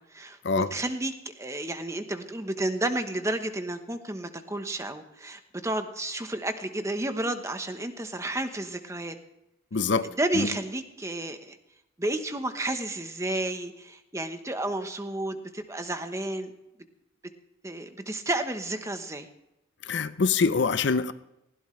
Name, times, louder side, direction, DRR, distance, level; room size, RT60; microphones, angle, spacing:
voice 1, 0.0-9.2 10.0-11.6 12.0-16.5 17.6-19.3, right 1 dB, 15° right, 8 dB, 1.0 m, -31 dB
voice 2, 9.7-10.1 10.3-10.5 19.9-21.1, left 4 dB, 60° left, 13 dB, 0.6 m, -24 dB
19.0 x 16.0 x 3.3 m, 0.89 s
head